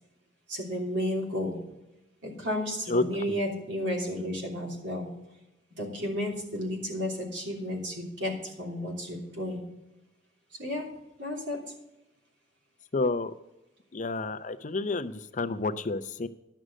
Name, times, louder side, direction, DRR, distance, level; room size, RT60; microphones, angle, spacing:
voice 1, 0.5-1.6 2.2-5.1 5.8-9.6 10.6-10.9 11.2-11.6, left 1 dB, 80° right, 0 dB, 3.1 m, -32 dB
voice 2, 2.9-3.4 12.9-13.3 13.9-16.3, left 3 dB, 45° left, 11 dB, 0.6 m, -30 dB
11.0 x 6.4 x 6.3 m, 0.96 s
head